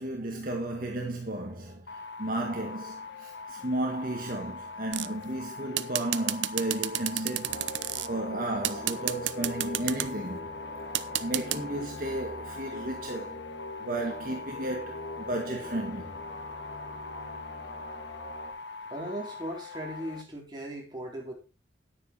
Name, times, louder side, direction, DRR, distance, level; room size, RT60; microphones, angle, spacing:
voice 1, 0.0-1.9 2.2-7.7 8.1-10.5 11.2-13.4 13.8-16.2, right 1 dB, 50° right, 2.0 m, -33 dB
sound 1, 1.9-20.2, left 4 dB, 80° left, 1.1 m, -42 dB
sound 2, 4.9-5.3 5.8-8.1 8.6-10.1 10.9-11.6, right 13 dB, 90° right, 0.7 m, -30 dB
sound 3, 7.5-18.5, left 1 dB, 60° left, 5.9 m, -43 dB
voice 2, 18.9-21.3, right 1 dB, 25° right, 3.8 m, -37 dB
10.0 x 9.6 x 4.6 m
head